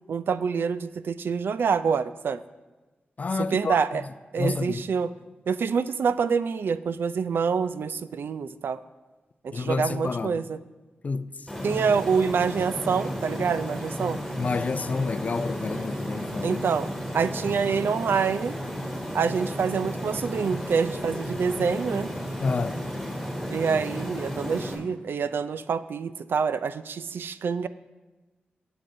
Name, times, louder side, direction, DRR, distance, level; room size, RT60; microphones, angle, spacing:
voice 1, 0.1-2.4 3.5-4.0 4.3-5.1 5.5-8.8 9.4-10.6 11.6-14.2 16.4-16.9 17.1-18.6 19.1-22.1 23.5-27.7, right 6 dB, 75° right, 0.3 m, -26 dB
voice 2, 3.2-4.0 4.4-4.8 9.5-10.4 11.0-11.3 14.4-16.6 22.4-22.8, left 4 dB, 45° left, 0.4 m, -29 dB
sound 1, 11.5-24.7, equal, 5° right, 2.8 m, -33 dB
16.0 x 7.8 x 2.6 m
wide cardioid pair, 105°, 4 cm